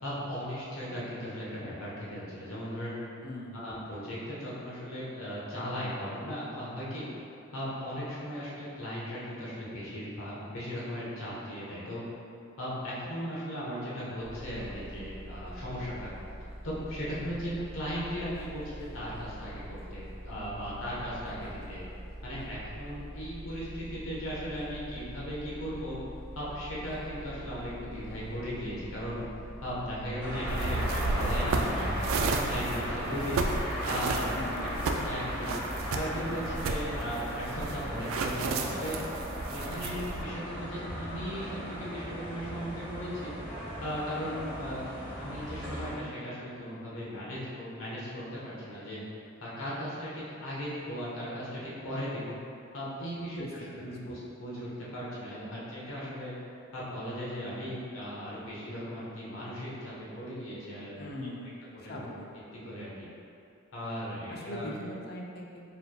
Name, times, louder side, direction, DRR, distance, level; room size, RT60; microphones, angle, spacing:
voice 1, 0.0-3.0 3.5-7.0 7.5-12.0 12.6-16.1 16.6-21.8 22.2-26.0 26.3-29.2 29.6-33.4 33.9-35.5 35.9-38.9 39.5-43.3 43.8-44.8 45.1-49.0 49.4-52.4 52.7-53.4 53.7-56.3 56.7-61.3 61.8-62.2 62.7-63.1 63.7-64.7, equal, 80° left, -7 dB, 1.1 m, -37 dB
voice 2, 3.2-3.8 31.4-31.9 34.3-34.7 53.3-54.2 61.0-62.3 64.3-65.6, left 1 dB, 50° left, -2 dB, 0.5 m, -41 dB
sound 1, 14.2-32.7, right 1 dB, 45° right, 0.6 m, -44 dB
sound 2, 30.2-45.9, equal, 10° right, 1.3 m, -36 dB
sound 3, 30.5-40.2, right 3 dB, 75° right, 0.3 m, -33 dB
4.6 x 3.4 x 2.2 m, 2.6 s
head